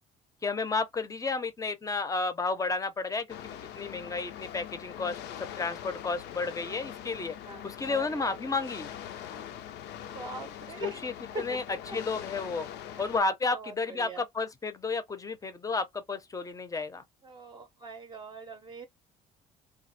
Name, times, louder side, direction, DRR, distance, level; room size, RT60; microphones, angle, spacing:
voice 1, 0.4-7.4 7.6-8.9 10.8-11.6 11.9-12.7 13.0-17.0, left 4 dB, 20° left, 0.6 m, -32 dB
sound 1, 3.3-13.2, left 10 dB, 80° left, 0.5 m, -43 dB
voice 2, 7.4-8.4 9.3-9.5 10.1-11.0 11.3-12.0 12.9-13.1 13.5-14.2 17.2-18.9, right 3 dB, 25° right, 0.6 m, -42 dB
3.3 x 2.3 x 2.7 m
cardioid pair, 110°, 17 cm